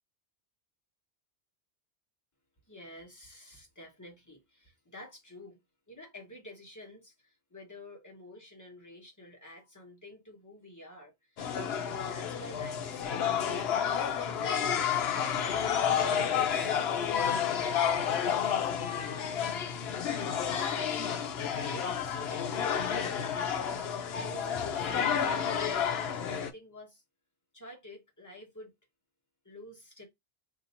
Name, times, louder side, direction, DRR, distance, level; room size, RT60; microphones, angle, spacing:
voice 1, 2.7-5.6 5.9-11.1 11.5-13.9 14.3-19.4 19.7-21.1 21.4-22.9 23.4-27.0 27.5-28.7 29.4-30.0, left 1 dB, 15° left, 1.2 m, -50 dB
sound 1, 11.4-26.5, left 8 dB, 70° left, 0.9 m, -30 dB
2.8 x 2.7 x 4.0 m
omnidirectional pair, 1.1 m